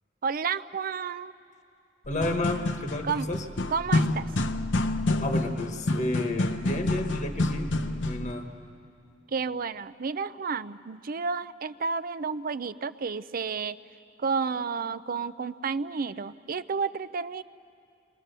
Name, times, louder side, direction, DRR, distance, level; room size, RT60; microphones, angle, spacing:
voice 1, 0.2-1.3 3.0-3.3 3.7-4.3 9.3-13.8 14.2-17.4, right 5 dB, 50° right, 15 dB, 0.5 m, -31 dB
sound 1, 2.1-8.3, left 2 dB, 70° left, 0.9 m, -28 dB
voice 2, 2.1-3.4 5.2-7.7 8.0-8.5, left 1 dB, 40° left, 4 dB, 1.2 m, -31 dB
29.0 x 22.0 x 6.8 m, 2.5 s
head